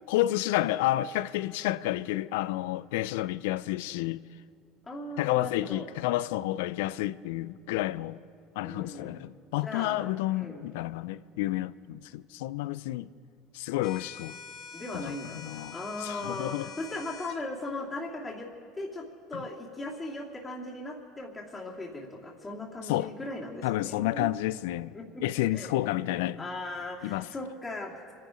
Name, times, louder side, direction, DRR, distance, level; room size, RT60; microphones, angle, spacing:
voice 1, 0.1-4.2 5.2-8.2 8.6-13.1 13.5-14.4 14.9-15.1 15.4-15.7 16.0-16.7 19.3-19.4 22.9-23.1 23.6-25.0 25.2-26.4 27.0-27.3, left 15 dB, 80° left, 0.4 m, -30 dB
voice 2, 4.9-5.9 8.6-9.2 9.6-10.0 10.3-10.6 14.7-18.5 18.8-19.0 19.3-24.3 24.9-25.2 25.5-25.7 26.1-28.1, left 2 dB, 20° left, 2.6 m, -38 dB
sound 1, 13.8-17.4, left 7 dB, 55° left, 1.8 m, -45 dB
25.5 x 10.5 x 5.2 m
supercardioid pair, 105°, 0 cm